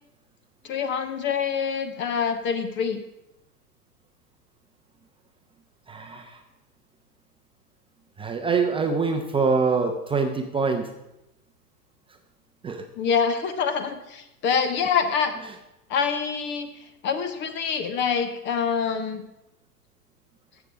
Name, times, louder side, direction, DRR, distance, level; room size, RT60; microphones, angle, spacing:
voice 1, 0.6-3.0 13.0-15.4 15.9-16.7 17.0-19.2, left 6 dB, 25° left, 9 dB, 0.8 m, -25 dB
voice 2, 5.9-6.4 8.2-10.9 12.6-12.8, right 4 dB, 10° right, 4 dB, 0.7 m, -24 dB
13.5 x 7.2 x 5.0 m, 0.92 s
figure-of-eight pair, 100°, 47 cm